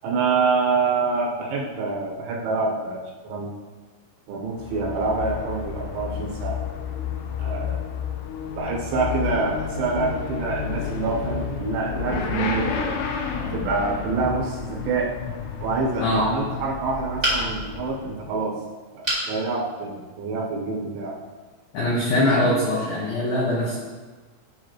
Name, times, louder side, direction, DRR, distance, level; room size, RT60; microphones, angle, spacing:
voice 1, 0.0-3.5 4.3-6.6 7.4-7.8 8.5-13.0 13.3-15.1 15.6-18.6 18.9-21.2, right 4 dB, 75° right, -2 dB, 3.4 m, -26 dB
Motorcycle / Accelerating revving vroom, 4.5-18.3, left 7 dB, 90° left, 2.4 m, -31 dB
voice 2, 16.0-16.3 21.7-23.8, left 1 dB, 70° left, -5 dB, 2.2 m, -22 dB
sound 1, 17.2-17.8 19.0-19.3 19.9-20.0 20.3-20.4, equal, 15° right, 1.5 m, -25 dB
14.0 x 5.5 x 3.1 m, 1.3 s
omnidirectional pair, 5.9 m